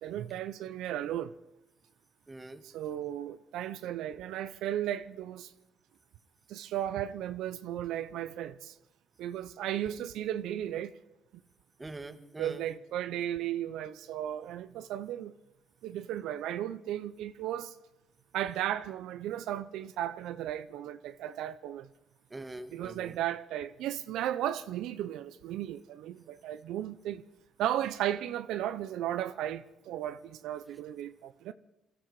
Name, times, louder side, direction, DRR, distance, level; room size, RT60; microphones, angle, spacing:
voice 1, 0.0-1.3 2.6-5.5 6.5-8.7 9.2-10.9 12.4-15.3 15.8-17.7 18.3-21.9 22.7-27.2 27.6-31.5, right 11 dB, 90° right, 0.6 m, -35 dB
voice 2, 2.3-2.6 11.8-12.6 22.3-23.2, right 2 dB, 20° right, 1.6 m, -43 dB
22.0 x 14.0 x 4.8 m
cardioid pair, 90°, 0 cm